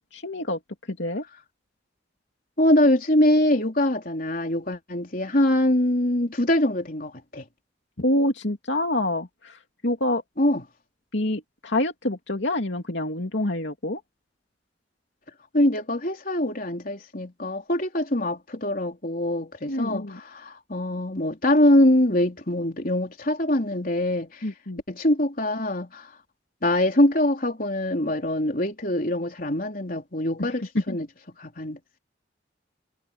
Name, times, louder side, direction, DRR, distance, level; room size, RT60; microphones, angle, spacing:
voice 1, 0.1-0.6 0.9-1.2 8.0-10.2 11.1-14.0 19.7-20.2 24.4-24.8 30.4-31.0, left 1 dB, 70° left, 2.7 m, -27 dB
voice 2, 2.6-7.4 10.4-10.6 15.5-24.4 24.9-26.1 26.6-31.1 31.4-31.8, left 1 dB, 45° left, 3.8 m, -23 dB
head